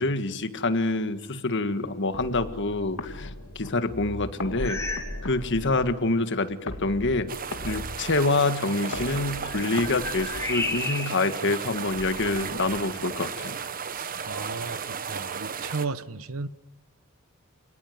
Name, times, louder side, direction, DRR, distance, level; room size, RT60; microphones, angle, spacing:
voice 1, 0.0-3.3 3.6-4.8 5.2-7.3 7.6-13.6, left 2 dB, 60° left, 1.8 m, -26 dB
sound 1, 2.1-11.1, left 1 dB, 90° left, 2.4 m, -39 dB
sound 2, 4.6-5.2 5.5-5.8 6.5-6.6 9.0-11.3 11.9-12.9, left 2 dB, 15° left, 4.1 m, -34 dB
sound 3, 7.3-15.9, right 6 dB, 40° right, 1.2 m, -35 dB
voice 2, 13.9-16.5, right 4 dB, 75° right, 1.1 m, -34 dB
29.5 x 19.0 x 9.4 m
head